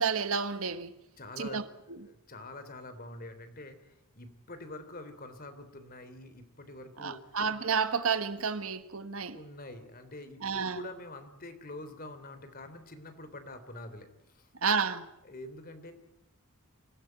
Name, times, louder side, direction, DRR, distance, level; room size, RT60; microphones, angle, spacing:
voice 1, 0.0-1.0 1.4-1.6 2.0-2.1 7.0-9.4 10.4-10.8 14.6-15.1, right 5 dB, 70° right, 1.4 m, -30 dB
voice 2, 1.2-1.6 2.0-7.4 9.3-14.5 15.2-15.9, left 2 dB, 45° left, 3.4 m, -46 dB
26.5 x 16.0 x 9.3 m
head